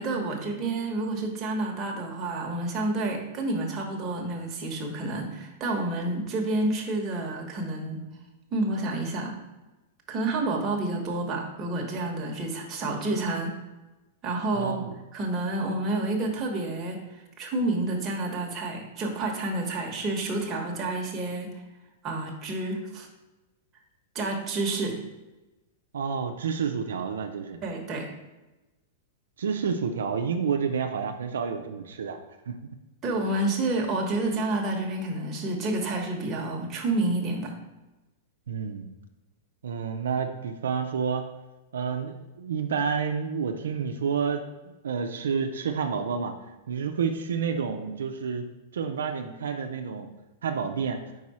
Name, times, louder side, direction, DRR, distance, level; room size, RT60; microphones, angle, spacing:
voice 1, 0.0-8.0 8.5-9.4 10.1-13.5 14.2-14.9 15.1-17.0 17.4-21.5 22.0-23.1 24.1-25.0 27.6-28.1 33.0-37.5, right 2 dB, 25° right, 0 dB, 1.2 m, -29 dB
voice 2, 14.5-14.9 25.9-27.6 29.4-32.2 32.5-32.8 38.5-38.9 39.6-41.3 41.7-46.4 46.7-48.5 48.7-50.1 50.4-51.0, right 6 dB, 90° right, 5 dB, 0.5 m, -29 dB
4.7 x 4.7 x 4.2 m, 1.1 s
hypercardioid pair, 135°, 0 cm